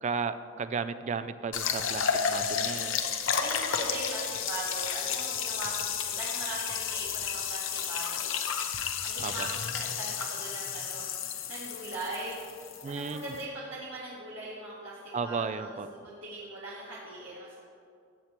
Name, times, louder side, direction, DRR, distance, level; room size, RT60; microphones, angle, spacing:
voice 1, 0.0-3.0 9.2-9.5 12.8-13.3 15.1-15.9, right 5 dB, 35° right, 12 dB, 0.3 m, -34 dB
sound 1, 1.5-13.4, left 7 dB, 75° left, 0.8 m, -32 dB
voice 2, 3.4-8.4 9.0-17.6, right 2 dB, 75° right, -8 dB, 1.7 m, -40 dB
14.5 x 8.1 x 3.0 m, 2.3 s
head